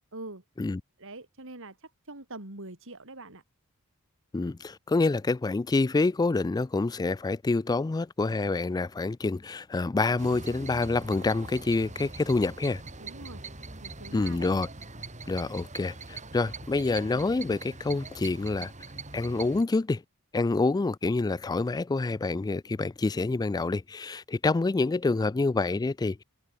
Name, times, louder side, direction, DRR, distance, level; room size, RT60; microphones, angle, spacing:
voice 1, 0.1-0.4 1.0-3.4 13.0-13.4 13.8-14.5, right 2 dB, 65° right, 4.8 m, -44 dB
voice 2, 4.3-12.8 14.1-14.7 15.3-18.7 19.1-20.0 20.3-26.2, left 3 dB, 20° left, 0.3 m, -27 dB
sound 1, 10.2-19.6, right 3 dB, 35° right, 4.6 m, -42 dB
head